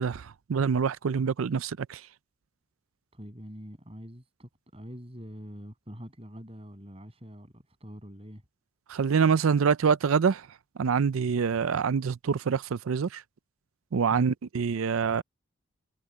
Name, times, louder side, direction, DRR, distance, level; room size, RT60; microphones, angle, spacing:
voice 1, 0.0-2.0 8.9-10.4 10.8-13.2 13.9-15.2, right 6 dB, 85° right, 0.5 m, -26 dB
voice 2, 3.1-8.4 14.1-14.3, equal, 30° right, 7.9 m, -44 dB
head